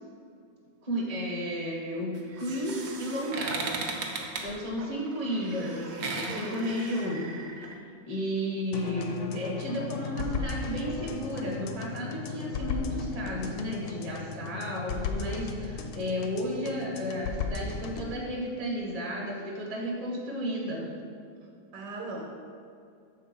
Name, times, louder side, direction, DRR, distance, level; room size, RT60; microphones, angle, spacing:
voice 1, 0.8-3.9 4.4-7.6 8.1-21.0, equal, 25° right, -4 dB, 0.9 m, -33 dB
sound 1, 2.1-7.7, right 3 dB, 60° right, 1.0 m, -37 dB
voice 2, 6.3-6.8 21.7-22.2, right 2 dB, 80° right, -1 dB, 1.4 m, -38 dB
sound 2, 8.7-18.1, left 5 dB, 75° left, 1.0 m, -36 dB
6.9 x 3.7 x 5.3 m, 2.3 s
omnidirectional pair, 1.8 m